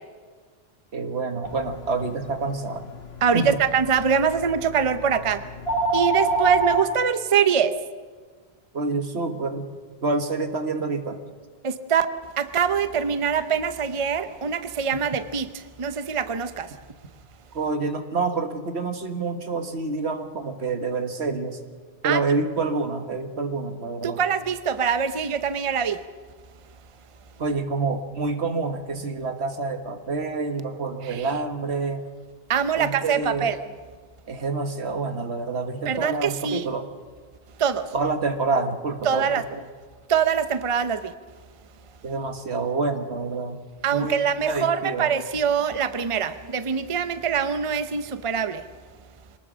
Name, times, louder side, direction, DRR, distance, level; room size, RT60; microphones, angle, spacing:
voice 1, 0.9-2.8 3.3-3.6 8.7-9.7 10.0-11.2 17.5-21.6 22.0-24.2 27.4-32.1 32.8-33.6 34.3-36.9 37.9-39.6 42.0-43.6 43.9-45.1, right 3 dB, 80° right, 7 dB, 1.7 m, -27 dB
sound 1, 1.4-6.8, right 2 dB, 70° left, 2.2 m, -29 dB
voice 2, 3.2-5.4 5.9-7.7 11.6-12.1 12.4-16.7 22.0-22.2 24.0-26.0 31.0-31.3 32.5-33.6 35.9-36.6 37.6-37.9 39.0-39.4 40.1-41.1 43.8-48.6, right 7 dB, 35° right, 11 dB, 0.8 m, -24 dB
24.0 x 19.0 x 6.2 m, 1.5 s
omnidirectional pair, 1.1 m